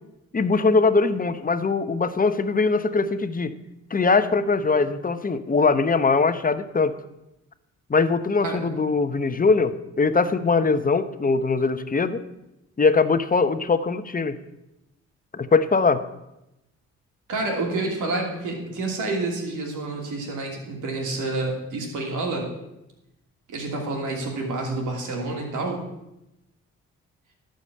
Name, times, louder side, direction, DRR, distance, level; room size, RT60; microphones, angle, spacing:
voice 1, 0.3-3.5 3.9-6.9 7.9-12.2 12.8-14.4 15.3-16.0, left 4 dB, 30° left, 11 dB, 0.9 m, -21 dB
voice 2, 17.3-22.5 23.5-25.8, right 2 dB, 80° right, 1 dB, 3.0 m, -28 dB
12.0 x 5.1 x 8.7 m, 0.91 s
cardioid pair, 70°, 30 cm